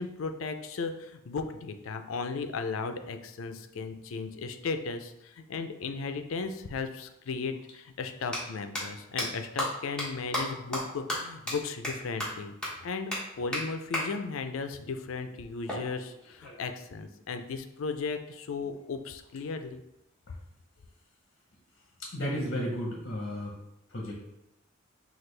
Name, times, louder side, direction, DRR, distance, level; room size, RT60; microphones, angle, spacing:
voice 1, 0.0-12.5 12.8-19.8, left 4 dB, 85° left, 8 dB, 0.4 m, -36 dB
sound 1, 8.3-8.4 8.7-8.8 9.2-9.3 9.6-9.7 10.0-10.1 10.3-10.4 10.7-10.8 11.1-11.2 11.5-11.6 11.8-11.9 12.2-12.3 12.6-12.7 13.1-13.2 13.5-13.6 13.9-14.0 15.7-16.7, left 1 dB, 5° left, 1.1 m, -32 dB
voice 2, 22.0-23.6 23.9-24.1, equal, 50° left, -1 dB, 0.8 m, -33 dB
5.9 x 2.4 x 3.2 m, 0.87 s
head